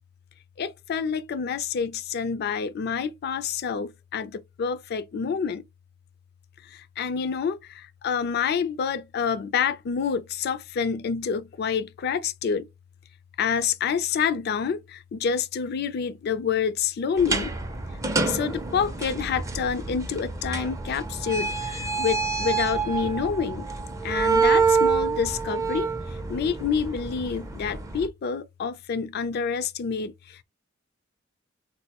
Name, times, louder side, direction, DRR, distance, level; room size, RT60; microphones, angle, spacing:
voice 1, 0.6-5.6 6.7-12.7 13.4-17.6 18.2-23.7 24.0-25.9 26.3-30.4, left 6 dB, 55° left, 0.4 m, -28 dB
sound 1, 17.2-28.1, right 4 dB, 15° right, 0.4 m, -27 dB
3.7 x 2.1 x 2.8 m
head